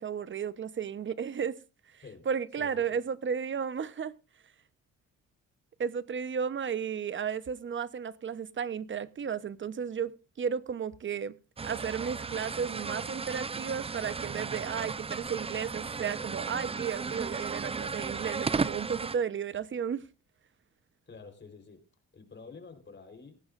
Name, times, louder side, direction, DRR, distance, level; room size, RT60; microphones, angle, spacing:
voice 1, 0.0-1.6 1.9-4.1 5.8-11.3 11.6-20.0, right 7 dB, 40° right, 0.9 m, -34 dB
voice 2, 2.6-3.0 21.1-21.9 22.1-23.4, left 4 dB, 35° left, 3.9 m, -49 dB
sound 1, 11.6-19.2, right 4 dB, 20° right, 0.5 m, -35 dB
18.0 x 14.5 x 2.5 m
cardioid pair, 90°, 30 cm